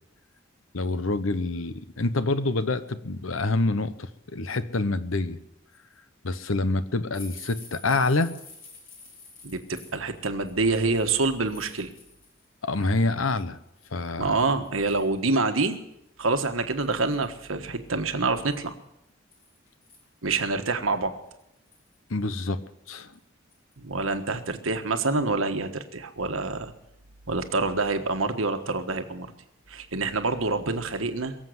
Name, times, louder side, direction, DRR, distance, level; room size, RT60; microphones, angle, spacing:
voice 1, 0.7-5.4 6.2-8.4 12.6-13.6 13.9-14.3 22.1-23.1, left 2 dB, 85° left, 13 dB, 1.0 m, -27 dB
sound 1, 7.1-12.5 12.8-13.4 14.0-14.1 14.5-15.2 15.7-15.8 16.1-16.2 16.7-17.3 18.3-20.4 20.9-21.0 21.4-22.0 22.9-23.2 23.5-23.7 24.1-24.2, left 3 dB, 45° left, 4.4 m, -49 dB
voice 2, 9.4-11.9 14.2-15.8 16.2-18.8 20.2-21.1 23.8-26.7 27.3-29.3 29.7-31.4, right 3 dB, 90° right, 7 dB, 1.4 m, -26 dB
22.5 x 7.7 x 7.8 m, 0.84 s
head